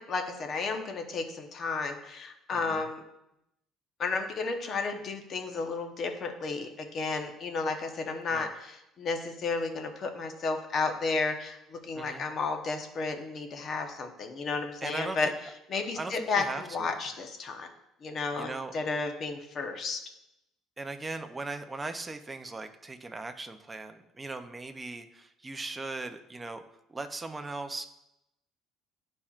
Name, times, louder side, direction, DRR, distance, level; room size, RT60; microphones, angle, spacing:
voice 1, 0.0-3.0 4.0-15.3 15.7-17.7 18.0-20.0, left 4 dB, 40° left, 5 dB, 0.9 m, -32 dB
voice 2, 2.5-2.9 8.3-8.5 11.9-12.3 13.6-13.7 14.8-15.3 15.9-17.0 18.3-18.7 20.8-26.6 26.9-27.9, right 3 dB, 15° right, 7 dB, 0.5 m, -39 dB
11.5 x 4.3 x 2.4 m, 0.84 s
cardioid pair, 145°, 0 cm